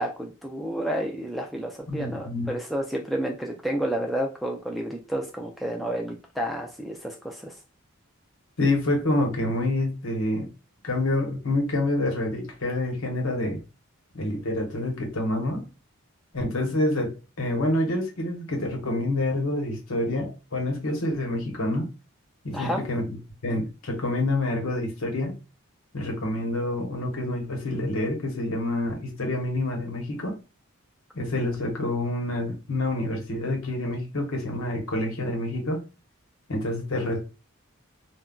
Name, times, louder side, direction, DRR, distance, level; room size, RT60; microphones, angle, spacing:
voice 1, 0.0-7.6 22.5-22.8, right 1 dB, ahead, 2 dB, 0.3 m, -30 dB
voice 2, 1.9-2.5 8.6-10.5 10.8-13.6 14.1-15.6 16.3-17.1 17.4-21.9 22.4-23.2 23.4-25.4 25.9-30.4 31.1-35.8 36.5-37.2, left 1 dB, 80° left, 1 dB, 1.0 m, -27 dB
2.3 x 2.2 x 3.7 m, 0.31 s
head